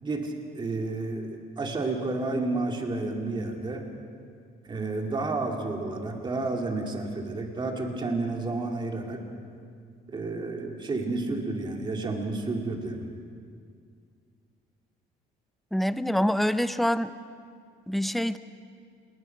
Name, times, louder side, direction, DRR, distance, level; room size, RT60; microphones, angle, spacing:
voice 1, 0.0-3.8 4.7-9.2 10.1-13.1, right 3 dB, 25° right, 2 dB, 2.5 m, -31 dB
voice 2, 15.7-17.1 17.9-18.4, equal, ahead, 12 dB, 0.5 m, -25 dB
29.0 x 20.5 x 5.9 m, 2.2 s
cardioid pair, 170°, 19 cm